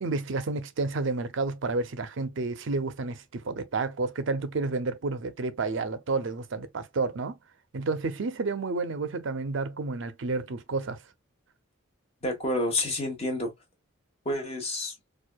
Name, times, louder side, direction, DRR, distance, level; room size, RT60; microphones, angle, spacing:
voice 1, 0.0-7.4 7.7-11.0, right 3 dB, 60° right, 0.5 m, -30 dB
voice 2, 12.2-13.5 14.2-14.9, left 1 dB, 30° left, 1.1 m, -29 dB
4.5 x 2.3 x 2.2 m
head